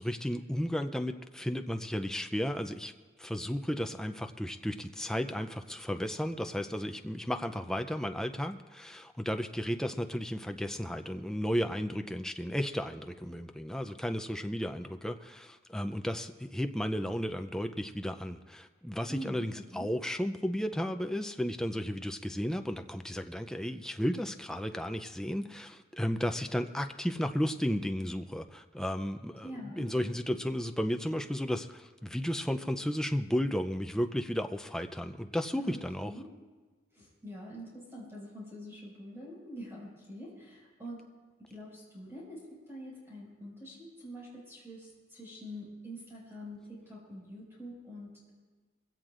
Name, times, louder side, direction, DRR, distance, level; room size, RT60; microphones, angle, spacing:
voice 1, 0.0-2.9 3.2-36.1, equal, 5° left, 6 dB, 0.4 m, -34 dB
voice 2, 19.1-19.9 29.4-29.9 35.6-35.8 36.0-36.3 36.9-41.0 41.4-48.3, equal, 15° right, -5 dB, 5.3 m, -45 dB
22.5 x 16.5 x 2.5 m, 1.4 s
head